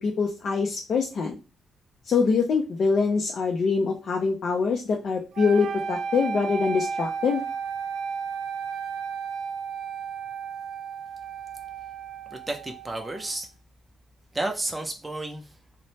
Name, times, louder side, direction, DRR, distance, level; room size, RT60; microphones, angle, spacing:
voice 1, 0.0-1.4 2.1-7.4, left 5 dB, 50° left, 1 dB, 0.5 m, -24 dB
sound 1, 5.3-13.4, right 6 dB, 80° right, 0.5 m, -33 dB
voice 2, 12.3-13.5 14.3-15.6, right 2 dB, 10° right, 3 dB, 0.5 m, -32 dB
3.1 x 2.1 x 2.7 m, 0.30 s
cardioid pair, 140°, 0 cm